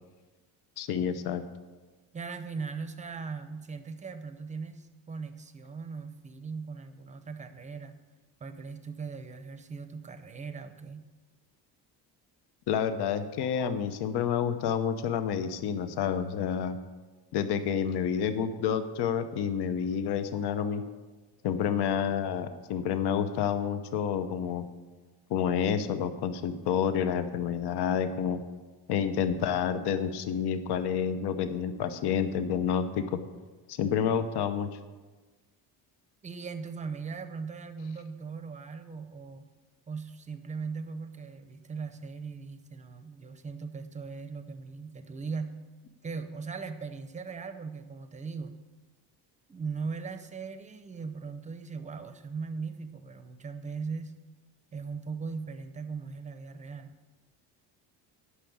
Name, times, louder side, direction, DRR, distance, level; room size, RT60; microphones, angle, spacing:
voice 1, 0.8-1.4 12.7-16.8 17.3-20.8 21.4-24.6 25.3-28.4 28.9-33.2 33.7-34.7, left 8 dB, 65° left, 10 dB, 0.9 m, -29 dB
voice 2, 2.1-8.0 8.4-11.0 36.2-39.5 39.9-45.6 46.0-48.6 49.5-54.1 54.7-57.0, right 5 dB, 15° right, 9 dB, 0.6 m, -39 dB
9.9 x 6.2 x 8.5 m, 1.3 s
cardioid pair, 160°, 42 cm